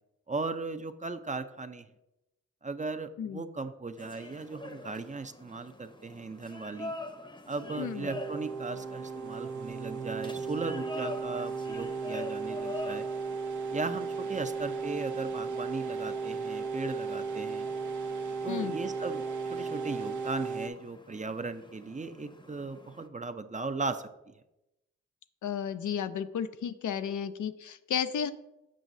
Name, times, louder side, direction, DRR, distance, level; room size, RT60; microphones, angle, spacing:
voice 1, 0.3-1.9 2.6-6.9 7.5-13.1 13.7-17.7 18.4-19.2 19.5-24.3, right 3 dB, 25° right, 10 dB, 0.5 m, -37 dB
voice 2, 3.2-3.5 7.8-8.1 18.5-18.8 25.4-28.3, left 8 dB, 80° left, 11 dB, 0.5 m, -33 dB
sound 1, 4.0-23.1, left 2 dB, 15° left, 0.7 m, -47 dB
sound 2, 7.6-20.7, right 5 dB, 80° right, 0.7 m, -35 dB
7.5 x 6.1 x 2.7 m, 0.91 s
cardioid pair, 50°, 29 cm